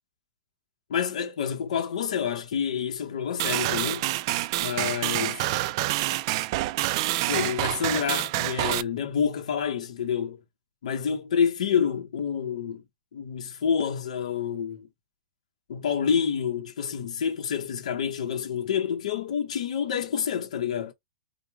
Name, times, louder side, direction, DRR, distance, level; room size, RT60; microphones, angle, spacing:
voice 1, 0.9-4.0 4.6-5.4 7.3-10.4 10.8-12.8 13.1-14.9 15.7-20.9, left 7 dB, 80° left, 0.9 m, -28 dB
sound 1, 3.4-8.8, right 17 dB, 45° right, 0.4 m, -27 dB
5.1 x 2.1 x 4.5 m
supercardioid pair, 155°, 4 cm